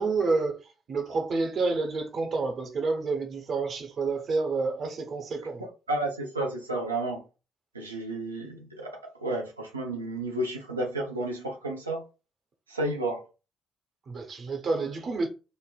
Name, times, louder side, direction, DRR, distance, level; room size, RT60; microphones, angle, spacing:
voice 1, 0.0-5.6 14.1-15.3, right 3 dB, 50° right, 0.7 m, -29 dB
voice 2, 5.6-7.2 7.7-12.0 12.7-13.2, right 2 dB, 85° right, 0.5 m, -32 dB
3.2 x 2.1 x 2.2 m
figure-of-eight pair, 45°, 0 cm